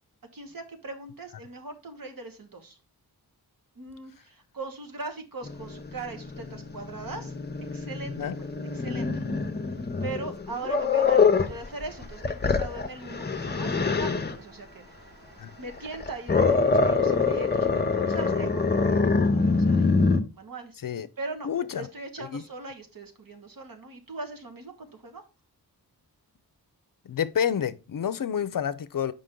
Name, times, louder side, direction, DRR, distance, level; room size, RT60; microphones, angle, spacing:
voice 1, 0.3-2.8 3.7-7.3 7.7-9.2 10.0-15.0 15.5-20.0 20.3-20.8 21.2-25.2, right 3 dB, 60° right, 1.4 m, -40 dB
Growling, 5.4-11.6 12.0-14.4 15.8-20.2, left 4 dB, 25° left, 0.7 m, -25 dB
sound 1, 11.4-17.8, equal, 90° right, 3.9 m, -51 dB
voice 2, 21.4-21.9 22.2-22.4 27.0-29.1, left 8 dB, 60° left, 0.6 m, -29 dB
6.7 x 5.3 x 3.7 m
wide cardioid pair, 80°, 39 cm